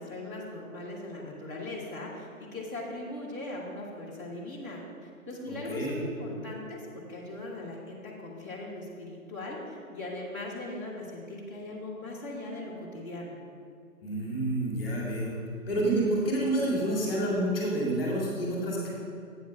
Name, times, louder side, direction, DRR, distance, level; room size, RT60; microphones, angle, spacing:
voice 1, 0.0-13.4, left 2 dB, 15° right, -9 dB, 0.7 m, -39 dB
voice 2, 5.5-6.0 14.0-15.3 15.7-18.9, right 1 dB, 10° left, -4 dB, 1.8 m, -28 dB
8.1 x 4.9 x 6.1 m, 2.4 s
hypercardioid pair, 175°, 43 cm